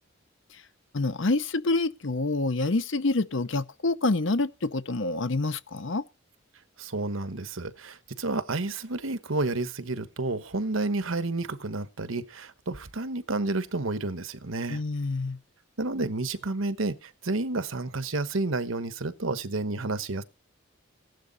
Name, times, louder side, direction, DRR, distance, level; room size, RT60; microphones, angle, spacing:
voice 1, 0.9-6.0 14.7-15.4, left 2 dB, 65° left, 0.8 m, -27 dB
voice 2, 6.8-14.8 15.8-20.2, right 2 dB, 75° right, 1.2 m, -30 dB
16.0 x 11.5 x 4.1 m
head